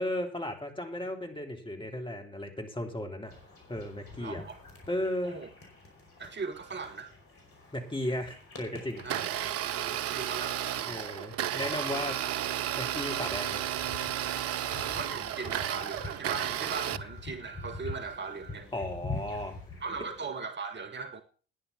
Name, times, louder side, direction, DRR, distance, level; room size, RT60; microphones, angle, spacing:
voice 1, 0.0-3.3 3.7-4.4 4.9-5.4 7.7-9.0 10.9-12.2 12.7-13.7 18.7-19.6, left 1 dB, 15° left, 3 dB, 3.5 m, -35 dB
sound 1, 3.3-20.2, left 2 dB, 50° left, 5.1 m, -46 dB
voice 2, 4.2-4.6 5.2-5.5 6.2-7.1 9.0-10.6 14.8-18.7 19.8-21.2, right 4 dB, 40° right, 8 dB, 1.6 m, -39 dB
Domestic sounds home sounds, 9.0-17.0, right 11 dB, 55° right, 0.7 m, -33 dB
10.5 x 9.9 x 7.0 m, 0.39 s
figure-of-eight pair, 45°, 29 cm